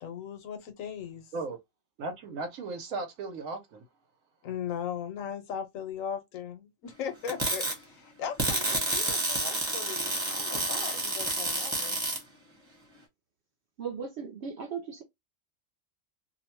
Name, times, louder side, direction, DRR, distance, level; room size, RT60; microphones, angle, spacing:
voice 1, 0.0-1.3 4.4-12.0, left 8 dB, 85° left, 1.1 m, -38 dB
voice 2, 2.0-3.8, right 3 dB, 90° right, 1.1 m, -36 dB
sound 1, 7.3-7.7 8.4-12.2, right 2 dB, 25° right, 0.9 m, -29 dB
voice 3, 13.8-15.0, right 6 dB, 65° right, 0.8 m, -37 dB
2.6 x 2.1 x 2.9 m
omnidirectional pair, 1.3 m